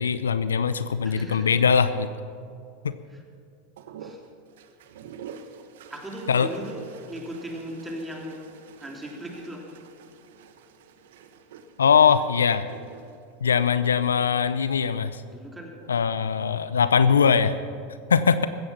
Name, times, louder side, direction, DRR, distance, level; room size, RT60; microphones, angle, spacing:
voice 1, 0.0-2.1 2.8-2.9 6.3-6.5 11.8-12.7 13.4-15.2 15.9-17.6 18.1-18.5, left 6 dB, 85° left, 14 dB, 0.6 m, -21 dB
voice 2, 1.0-1.6 3.1-3.2 4.0-4.2 5.9-8.5 8.8-9.8 15.3-15.8, equal, 10° right, 1 dB, 3.2 m, -38 dB
sound 1, 3.8-14.4 15.6-16.2, right 6 dB, 70° right, 1.1 m, -47 dB
16.0 x 14.0 x 5.8 m, 2.3 s
hypercardioid pair, 90°, 0 cm